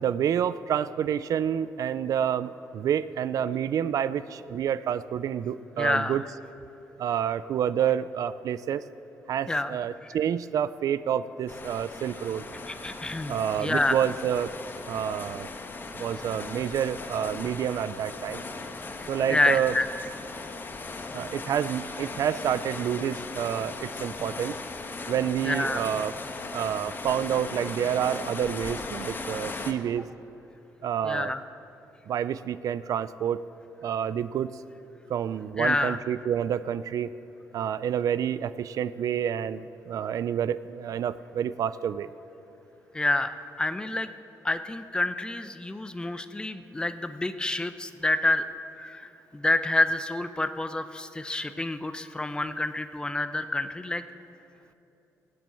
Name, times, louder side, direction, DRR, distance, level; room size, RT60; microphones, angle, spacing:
voice 1, 0.0-6.3 7.0-8.8 9.3-12.4 13.3-14.6 14.9-15.5 16.0-18.4 19.1-19.8 21.1-24.6 25.1-26.1 26.5-30.0 30.8-31.3 32.1-33.5 33.8-34.5 35.1-37.1 37.5-42.1, right 9 dB, 65° right, 15 dB, 0.4 m, -28 dB
voice 2, 5.8-6.2 9.5-9.8 12.7-14.0 19.3-19.9 25.4-25.8 31.0-31.4 35.6-36.0 42.9-43.3 43.6-44.1 44.4-48.4 48.8-54.0, left 2 dB, 15° left, 11 dB, 0.6 m, -28 dB
sound 1, 11.5-29.7, left 3 dB, 30° left, 1.1 m, -38 dB
18.5 x 7.6 x 8.4 m, 2.9 s
cardioid pair, 120°, 7 cm